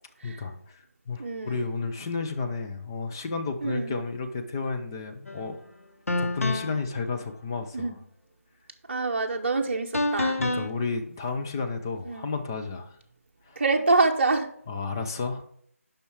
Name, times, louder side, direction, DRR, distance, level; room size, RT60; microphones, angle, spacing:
voice 1, 0.2-5.6 6.2-8.0 10.4-13.0 13.5-13.6 14.7-15.4, left 4 dB, 15° left, 4 dB, 0.5 m, -32 dB
voice 2, 1.2-1.7 3.6-3.9 7.7-7.9 8.9-10.4 12.0-12.3 13.6-14.5, right 3 dB, 45° right, 2 dB, 0.8 m, -26 dB
sound 1, 5.3-5.4 6.1-6.9 9.9-10.7, left 2 dB, 70° left, 0.9 m, -27 dB
6.9 x 5.6 x 4.6 m, 0.65 s
figure-of-eight pair, 165°, 8 cm